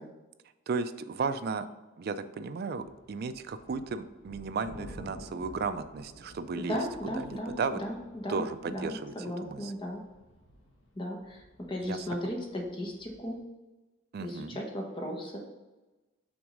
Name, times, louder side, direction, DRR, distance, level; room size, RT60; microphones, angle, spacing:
voice 1, 0.7-1.7 2.0-7.8 8.3-9.1 9.4-9.7 11.8-12.1 14.1-14.6, right 4 dB, 50° right, 11 dB, 0.3 m, -34 dB
sound 1, 2.7-13.4, left 1 dB, 70° left, 1.5 m, -51 dB
voice 2, 6.6-7.5 7.8-10.0 11.0-11.4 11.7-13.4 14.2-15.4, equal, 25° left, -1 dB, 1.0 m, -36 dB
6.1 x 3.6 x 5.0 m, 1.1 s
head